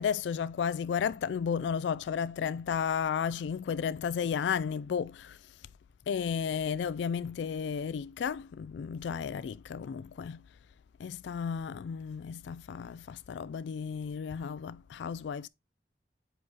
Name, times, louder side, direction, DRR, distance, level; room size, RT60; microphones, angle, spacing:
voice 1, 0.0-5.4 6.1-10.4 11.0-15.5, left 7 dB, 85° left, 0.3 m, -33 dB
8.1 x 5.0 x 2.8 m
head